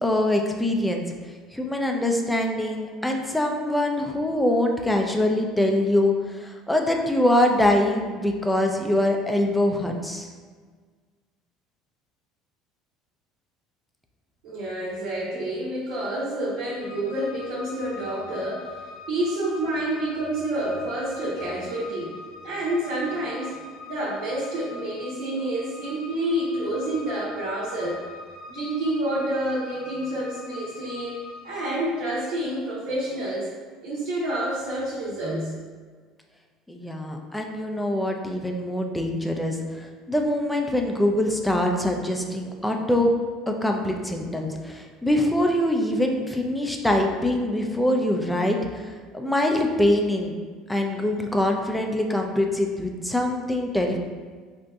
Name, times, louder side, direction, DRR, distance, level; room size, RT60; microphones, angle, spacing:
voice 1, 0.0-1.0 1.5-10.3 36.7-43.1 43.5-50.4 50.7-54.0, left 1 dB, 5° left, 2 dB, 0.4 m, -24 dB
voice 2, 14.4-22.1 22.4-23.6 23.8-28.0 28.5-31.2 31.4-33.5 33.8-35.6, right 1 dB, 70° right, -9 dB, 0.8 m, -28 dB
sound 1, 16.8-31.8, left 3 dB, 75° left, 0.4 m, -43 dB
3.8 x 2.6 x 2.3 m, 1.5 s
hypercardioid pair, 80°, 0 cm